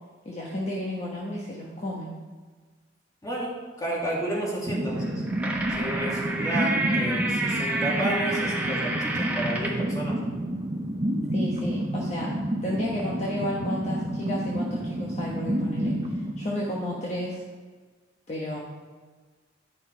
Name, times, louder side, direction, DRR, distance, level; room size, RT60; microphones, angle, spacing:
voice 1, 0.2-2.1 11.3-12.3 12.6-17.4 18.3-18.6, left 1 dB, 35° left, -4 dB, 1.2 m, -32 dB
voice 2, 3.2-5.2 5.8-10.2, right 1 dB, 20° left, -4 dB, 2.2 m, -31 dB
sound 1, 4.7-17.3, right 1 dB, 30° right, 0.7 m, -30 dB
sound 2, 5.0-9.9, right 2 dB, 10° right, 1.1 m, -29 dB
10.5 x 5.6 x 4.5 m, 1.4 s
head